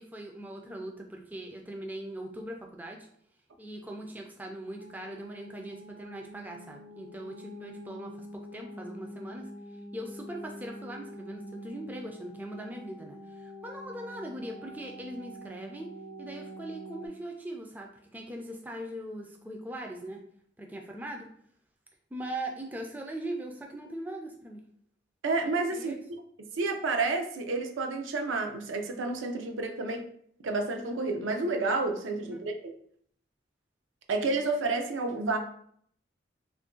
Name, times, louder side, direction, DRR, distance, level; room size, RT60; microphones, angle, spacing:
voice 1, 0.0-3.1 3.6-15.9 16.2-20.2 20.6-21.3 22.1-24.6 25.7-26.0 32.3-32.4, right 1 dB, 10° right, 0.3 m, -40 dB
sound 1, 4.8-17.1, equal, 55° left, 0.6 m, -45 dB
voice 2, 25.2-25.9 26.5-30.1 30.4-32.7 34.1-35.4, right 3 dB, 85° right, 0.5 m, -30 dB
2.9 x 2.5 x 3.6 m
head